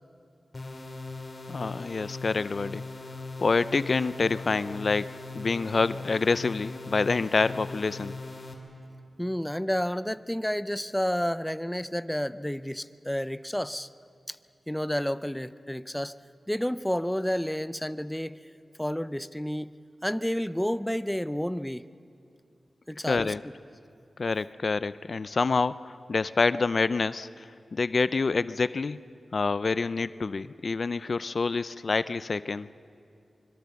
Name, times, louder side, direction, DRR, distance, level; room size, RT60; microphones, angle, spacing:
sound 1, 0.5-8.5, left 3 dB, 35° left, 3.2 m, -40 dB
voice 1, 1.5-2.8 3.4-8.1 23.1-23.4 24.2-29.0 29.3-32.7, left 4 dB, 55° left, 16 dB, 0.4 m, -27 dB
voice 2, 9.2-13.9 14.3-14.4 14.7-16.2 16.5-18.4 18.8-19.7 20.0-21.8 22.9-23.3, equal, 5° left, 14 dB, 0.5 m, -30 dB
25.0 x 22.0 x 7.0 m, 2.5 s
wide cardioid pair, 80°, 0 cm